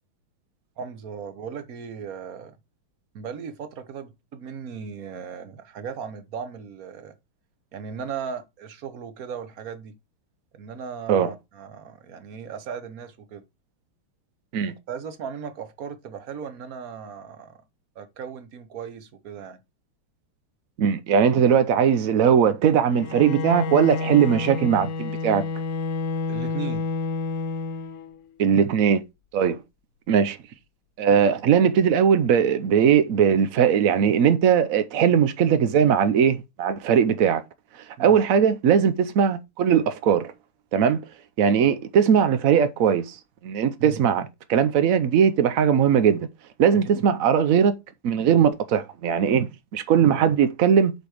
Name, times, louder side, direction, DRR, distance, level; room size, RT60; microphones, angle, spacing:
voice 1, 0.8-2.6 3.1-7.1 7.7-10.0 10.5-13.4 14.9-17.6 17.9-19.6 26.3-26.9 38.0-38.2 43.8-44.0 46.7-47.0, right 6 dB, 50° right, 1.2 m, -37 dB
voice 2, 20.8-25.4 28.4-29.0 29.3-29.6 30.1-30.4 31.0-37.4 38.0-40.3 40.7-41.0 41.4-43.2 43.4-46.3 46.6-47.8 48.0-50.9, right 7 dB, 85° right, 0.7 m, -19 dB
Bowed string instrument, 22.9-28.3, left 3 dB, 85° left, 1.9 m, -29 dB
7.9 x 4.6 x 4.9 m
omnidirectional pair, 2.4 m